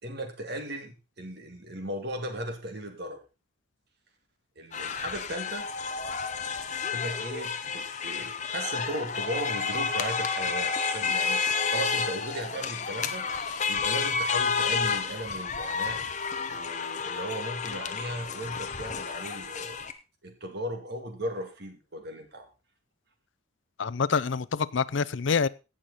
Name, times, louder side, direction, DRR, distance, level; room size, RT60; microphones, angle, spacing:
voice 1, 0.0-3.2 4.6-5.7 6.9-13.3 13.7-16.0 16.5-19.8 20.2-22.5, right 1 dB, 50° right, 5 dB, 2.3 m, -37 dB
sound 1, 4.7-19.9, left 5 dB, 35° left, 0.9 m, -30 dB
voice 2, 23.8-25.5, left 5 dB, 65° left, 17 dB, 0.5 m, -26 dB
16.5 x 6.4 x 4.1 m, 0.30 s
head